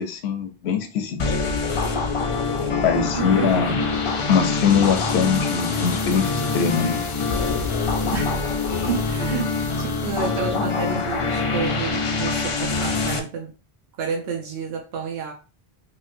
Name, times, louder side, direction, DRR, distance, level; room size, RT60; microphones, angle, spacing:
voice 1, 0.0-1.4 2.8-3.8 4.3-7.0, left 7 dB, 85° left, 0.9 m, -22 dB
sound 1, 1.2-13.2, left 4 dB, 50° left, 0.4 m, -24 dB
voice 2, 3.1-3.9 8.1-8.3 8.9-9.5 9.8-13.5 14.0-15.3, right 6 dB, 75° right, 0.8 m, -30 dB
3.0 x 2.8 x 2.5 m
omnidirectional pair, 1.1 m